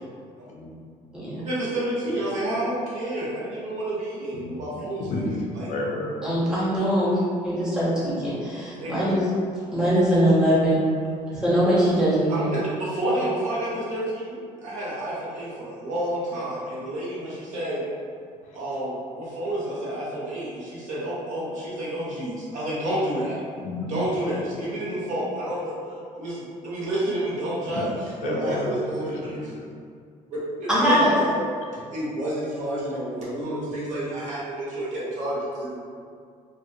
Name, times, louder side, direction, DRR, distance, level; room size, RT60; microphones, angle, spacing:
voice 1, 0.5-0.9 4.3-6.2 18.4-18.5 23.6-23.9 27.7-27.8 28.2-29.5, left 2 dB, 65° left, -1 dB, 0.4 m, -32 dB
voice 2, 1.4-5.2 5.5-5.7 8.7-8.9 12.3-17.8 18.5-23.4 23.9-25.8 26.2-27.9 28.2-29.5 30.3-31.4 31.7-35.7, right 1 dB, 65° right, -7 dB, 0.9 m, -29 dB
voice 3, 6.2-9.2 9.7-10.8 11.3-12.5 30.7-31.1, equal, 5° right, -10 dB, 0.8 m, -22 dB
2.5 x 2.2 x 2.6 m, 2.2 s
cardioid pair, 150°, 14 cm